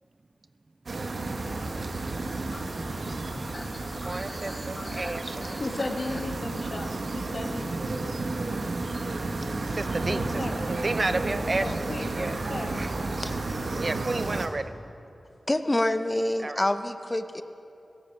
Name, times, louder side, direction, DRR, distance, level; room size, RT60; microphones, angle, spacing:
sound 1, 0.9-14.5, right 2 dB, 70° right, 1.1 m, -32 dB
sound 2, 2.0-8.4, left 2 dB, 40° left, 1.2 m, -46 dB
voice 1, 3.9-5.6 9.7-11.9 12.1-12.4 12.7-12.9 13.8-14.7 16.4-16.6, right 2 dB, 45° right, 12 dB, 0.5 m, -31 dB
voice 2, 5.6-7.7 10.1-10.7 11.0-12.8, left 2 dB, 60° left, 5 dB, 1.2 m, -36 dB
voice 3, 15.5-17.4, left 1 dB, 25° left, 9 dB, 0.7 m, -26 dB
17.0 x 13.5 x 4.5 m, 2.8 s
cardioid pair, 55°, 0 cm